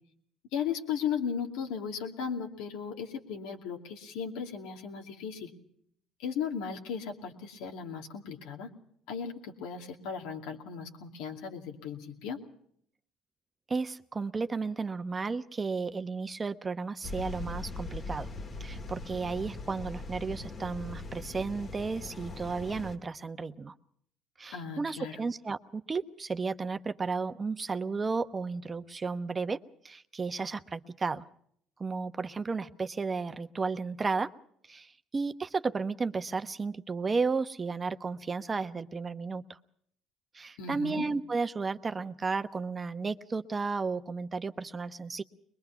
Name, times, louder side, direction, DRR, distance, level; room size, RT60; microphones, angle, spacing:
voice 1, 0.5-5.5 6.2-8.7 9.1-12.4 24.5-25.2 40.6-41.1, left 7 dB, 80° left, 2 dB, 2.6 m, -36 dB
voice 2, 13.7-18.3 18.6-23.7 24.4-31.2 31.8-34.3 34.7-39.4 40.3-45.2, right 4 dB, 30° right, 10 dB, 1.0 m, -33 dB
sound 1, 17.0-23.0, left 3 dB, 40° left, 2.1 m, -41 dB
22.5 x 21.5 x 5.8 m, 0.67 s
supercardioid pair, 70°, 0 cm